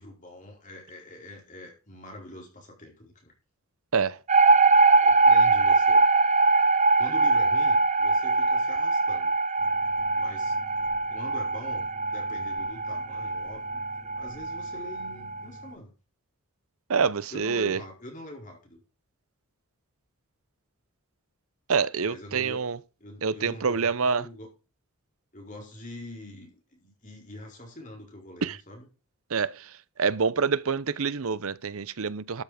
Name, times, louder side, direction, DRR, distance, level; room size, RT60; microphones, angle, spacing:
voice 1, 0.0-3.3 5.0-6.0 7.0-9.4 10.1-10.5 11.1-13.8 14.2-15.9 17.3-18.8 22.0-22.6 23.0-24.5 25.3-28.9, left 1 dB, 35° left, 4.5 m, -44 dB
sound 1, 4.3-15.5, right 3 dB, 30° right, 0.7 m, -22 dB
sound 2, 9.6-15.7, equal, 15° right, 3.8 m, -51 dB
voice 2, 16.9-17.8 21.7-22.8 23.2-24.3 28.4-28.6 29.3-29.7 30.0-32.4, right 5 dB, 70° right, 0.7 m, -26 dB
13.0 x 7.1 x 5.1 m
head